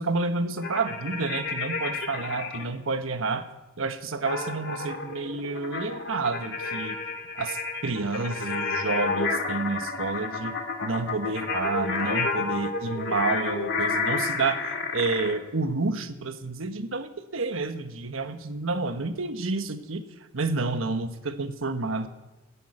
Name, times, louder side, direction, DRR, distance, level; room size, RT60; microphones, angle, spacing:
voice 1, 0.0-3.4 3.8-7.0 7.4-7.6 7.8-10.5 10.8-20.0 20.3-22.1, right 3 dB, 80° right, 9 dB, 1.2 m, -29 dB
sound 1, 0.6-2.6 4.3-15.3, left 4 dB, 60° left, 1.9 m, -30 dB
11.5 x 10.5 x 8.5 m, 1.1 s
head